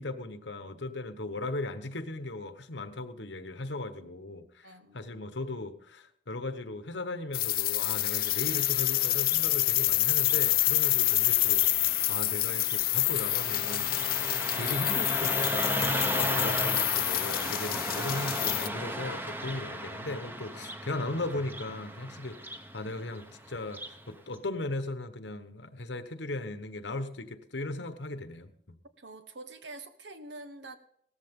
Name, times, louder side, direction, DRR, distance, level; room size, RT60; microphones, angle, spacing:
voice 1, 0.0-14.0 14.5-28.8, left 2 dB, 80° left, 10 dB, 1.2 m, -37 dB
voice 2, 4.6-5.3 19.6-19.9 29.0-30.8, right 2 dB, 75° right, 9 dB, 1.4 m, -46 dB
sound 1, 7.3-18.7, left 17 dB, 55° left, 0.5 m, -27 dB
Car passing by, 8.0-24.0, right 1 dB, 10° right, 1.1 m, -36 dB
17.5 x 14.0 x 3.7 m, 0.68 s
head